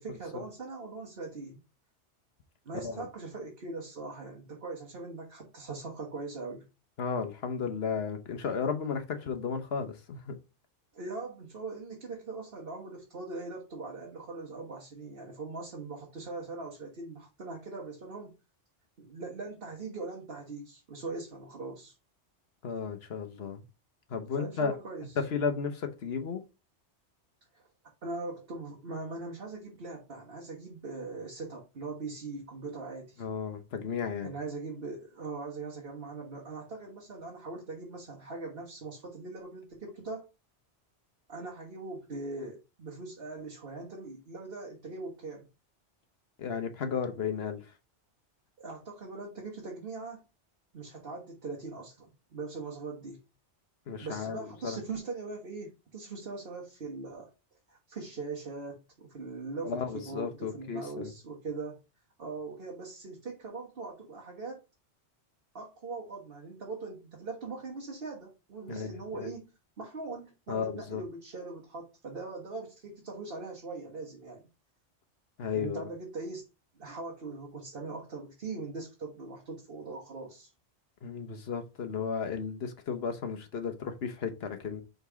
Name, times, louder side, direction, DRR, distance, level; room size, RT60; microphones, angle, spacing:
voice 1, 0.0-1.6 2.6-6.7 10.9-18.3 19.0-21.9 24.4-25.1 27.5-27.7 28.0-33.3 34.2-40.3 41.3-45.5 48.6-50.2 50.7-53.2 54.0-57.3 57.7-61.8 62.2-64.6 65.5-69.5 69.8-74.4 75.5-76.5 76.7-80.5, right 3 dB, 55° right, 1.5 m, -41 dB
voice 2, 7.0-10.3 22.6-23.6 24.1-24.7 25.2-26.4 33.2-34.3 46.4-47.6 53.9-54.8 59.6-61.1 68.7-69.3 70.5-71.0 75.4-75.9 81.0-84.8, left 6 dB, 60° left, 1.1 m, -34 dB
5.2 x 3.9 x 4.8 m
omnidirectional pair, 1.2 m